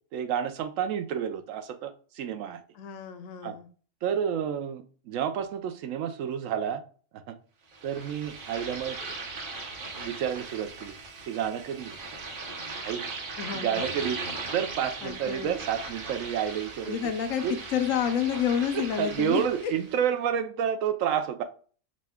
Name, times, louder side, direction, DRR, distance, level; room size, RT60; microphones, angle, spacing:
voice 1, 0.1-2.6 3.4-3.6 4.0-6.8 7.3-7.4 7.8-9.0 10.0-10.9 11.2-12.0 12.8-13.0 13.5-14.2 14.5-17.0 17.4-17.6 19.0-21.4, right 8 dB, 90° right, 8 dB, 1.0 m, -30 dB
voice 2, 2.8-3.7 13.4-13.9 15.0-15.6 16.9-19.7, left 8 dB, 85° left, 9 dB, 1.0 m, -30 dB
sound 1, 7.7-20.0, right 3 dB, 50° right, 0.9 m, -39 dB
5.0 x 2.2 x 3.5 m, 0.41 s
omnidirectional pair, 1.3 m